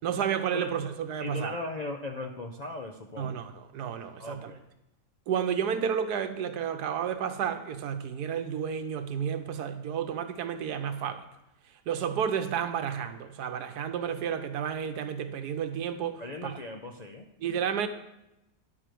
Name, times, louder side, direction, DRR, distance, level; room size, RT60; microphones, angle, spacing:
voice 1, 0.0-1.5 3.2-4.5 5.3-11.2 11.9-16.5 17.4-17.9, right 8 dB, 90° right, 9 dB, 1.4 m, -31 dB
voice 2, 1.2-3.4 4.2-4.7 16.2-17.3, left 2 dB, 55° left, 3 dB, 0.4 m, -38 dB
10.5 x 5.0 x 7.6 m, 0.90 s
omnidirectional pair, 1.7 m